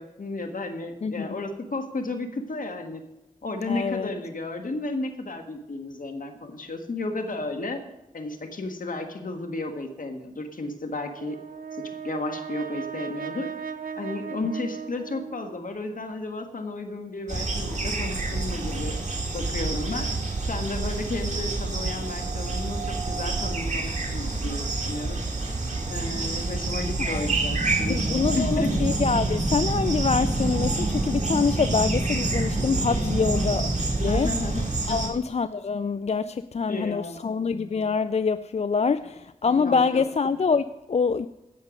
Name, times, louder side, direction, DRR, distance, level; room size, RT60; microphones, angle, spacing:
voice 1, 0.0-3.0 3.4-7.8 8.1-11.4 12.0-13.5 14.0-19.0 19.3-20.1 20.5-25.2 25.9-28.7 33.0-33.5 34.0-35.2 36.7-37.4 39.6-40.0, left 2 dB, 70° left, 1.6 m, -33 dB
voice 2, 1.0-1.4 3.7-4.1 27.0-27.3 27.9-34.3 34.9-41.3, left 5 dB, 50° left, 0.4 m, -25 dB
Brass instrument, 11.1-15.6, right 7 dB, 80° right, 0.7 m, -36 dB
sound 1, 17.3-35.1, right 2 dB, 55° right, 2.6 m, -27 dB
16.5 x 6.6 x 5.2 m
cardioid pair, 50°, 15 cm